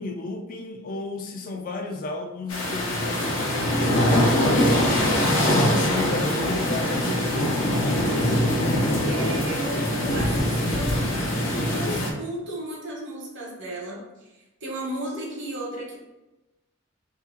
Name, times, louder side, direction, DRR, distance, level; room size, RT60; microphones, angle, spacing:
voice 1, 0.0-4.8 5.4-7.3, left 3 dB, 45° left, 3 dB, 0.4 m, -32 dB
sound 1, 2.5-12.1, left 1 dB, 80° left, 0.7 m, -23 dB
voice 2, 9.0-14.3 14.6-16.0, right 1 dB, 60° right, -2 dB, 1.0 m, -34 dB
2.9 x 2.7 x 3.7 m, 1.0 s
head